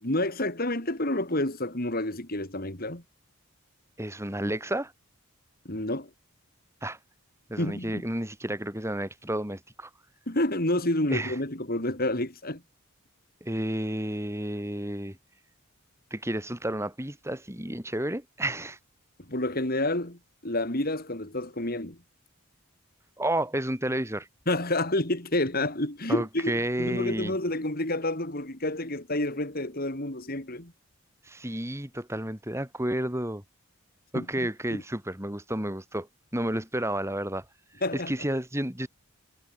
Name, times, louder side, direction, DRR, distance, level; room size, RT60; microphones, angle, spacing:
voice 1, 0.0-3.0 5.7-6.1 7.6-8.0 10.3-12.6 19.3-20.2 20.4-22.0 24.5-26.5 26.8-30.7 34.1-34.3 34.7-34.8 37.8-38.1, left 1 dB, 45° left, 3.5 m, -29 dB
voice 2, 4.0-4.9 6.8-7.0 7.5-9.9 11.1-11.4 13.4-15.2 16.1-18.8 23.2-24.3 26.1-27.3 31.3-33.4 34.1-36.1 36.3-37.5 37.9-38.9, right 1 dB, 15° right, 3.5 m, -31 dB
head